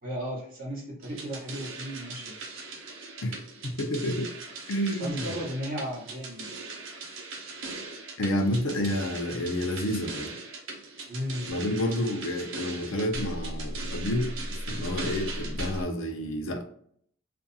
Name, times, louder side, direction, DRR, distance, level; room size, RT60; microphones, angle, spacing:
voice 1, 0.0-2.4 5.0-6.5 11.1-11.5, equal, 45° right, -4 dB, 1.3 m, -35 dB
sound 1, 1.0-15.8, right 2 dB, 70° right, 0.7 m, -38 dB
voice 2, 3.2-4.3 4.7-5.3 8.2-10.4 11.5-14.3 14.7-16.6, left 1 dB, 65° left, 4 dB, 0.5 m, -29 dB
2.5 x 2.3 x 2.6 m, 0.64 s
head